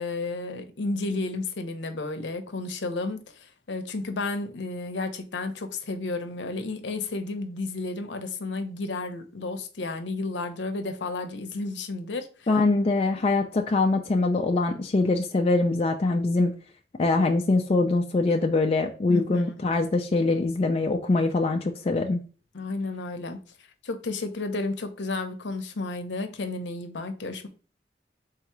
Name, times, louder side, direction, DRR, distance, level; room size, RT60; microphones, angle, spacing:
voice 1, 0.0-12.5 19.1-19.5 22.5-23.4 23.8-27.5, left 3 dB, 80° left, 0.7 m, -32 dB
voice 2, 12.5-16.5 17.0-22.2, left 3 dB, 35° left, 0.4 m, -23 dB
3.9 x 2.8 x 4.5 m
head